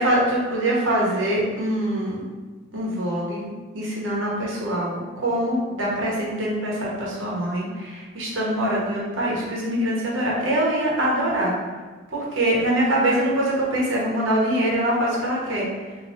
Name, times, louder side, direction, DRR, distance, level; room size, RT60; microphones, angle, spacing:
voice 1, 0.0-2.2 2.7-3.5 3.7-11.5 12.1-15.7, right 1 dB, 75° right, -5 dB, 1.2 m, -24 dB
3.7 x 2.9 x 3.8 m, 1.4 s
head